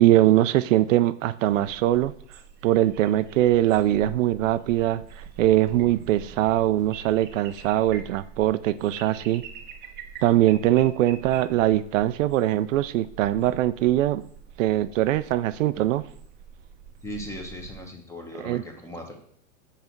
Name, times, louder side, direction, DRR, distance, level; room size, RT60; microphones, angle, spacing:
voice 1, 0.0-2.1 2.6-9.4 10.2-14.2 14.6-16.1 18.4-18.6, right 14 dB, 70° right, 13 dB, 0.5 m, -22 dB
sound 1, 1.5-17.8, right 7 dB, 25° right, 0.7 m, -45 dB
voice 2, 17.0-19.1, left 1 dB, 5° left, 3 dB, 1.1 m, -38 dB
5.6 x 4.2 x 5.9 m, 0.62 s
hypercardioid pair, 130°, 40 cm